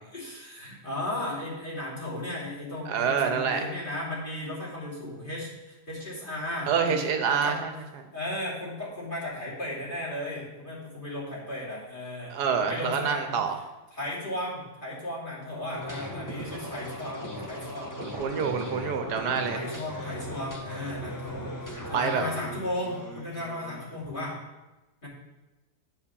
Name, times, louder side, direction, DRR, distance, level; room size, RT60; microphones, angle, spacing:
voice 1, 0.1-7.6 8.1-12.3 12.6-13.4 13.9-17.9 18.4-18.5 19.5-24.4 25.0-25.1, left 1 dB, 30° left, -7 dB, 3.0 m, -35 dB
voice 2, 2.9-3.6 6.7-7.7 8.0-8.1 12.3-13.6 18.0-19.6 21.9-22.2, right 6 dB, 75° right, 6 dB, 1.4 m, -27 dB
sound 1, 15.7-24.0, equal, 15° left, 1.2 m, -38 dB
8.6 x 5.0 x 6.8 m, 1.1 s
omnidirectional pair, 1.7 m